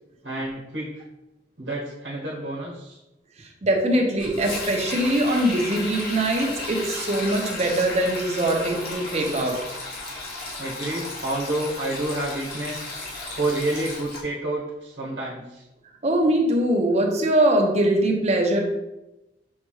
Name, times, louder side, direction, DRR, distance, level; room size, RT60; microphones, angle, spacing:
voice 1, 0.2-1.0 1.6-3.0 10.6-12.9 13.3-15.6, right 1 dB, 75° right, -5 dB, 1.1 m, -29 dB
voice 2, 3.6-9.7 16.0-18.6, right 1 dB, 40° right, 1 dB, 0.7 m, -22 dB
Sink (filling or washing), 4.2-14.2, left 2 dB, 60° left, 1.1 m, -34 dB
6.4 x 2.3 x 3.1 m, 0.98 s
head